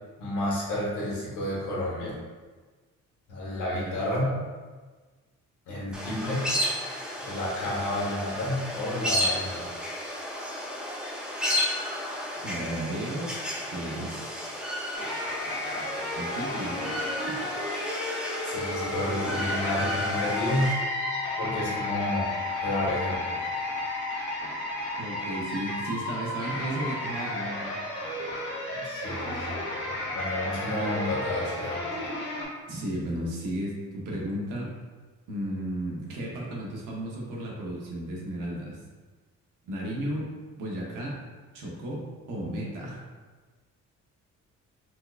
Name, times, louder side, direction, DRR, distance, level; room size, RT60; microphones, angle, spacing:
voice 1, 0.2-2.1 3.3-4.3 5.7-6.5 7.3-9.6 18.5-20.7 21.4-22.3 22.6-23.2 28.7-29.6 30.1-31.8, left 1 dB, 90° left, -6 dB, 1.2 m, -30 dB
sound 1, 5.9-20.7, equal, 5° right, 0.4 m, -33 dB
voice 2, 12.3-14.4 16.2-16.8 25.0-27.7 32.7-34.7 35.3-38.8 39.6-40.3 40.6-41.2 41.5-43.0, right 1 dB, 90° right, -3 dB, 0.9 m, -34 dB
sound 2, 14.9-32.4, left 1 dB, 40° left, 1.4 m, -33 dB
Wind instrument woodwind instrument, 18.3-24.2, left 7 dB, 60° left, 0.9 m, -36 dB
4.5 x 2.2 x 2.3 m, 1.3 s
cardioid pair, 90°, 30 cm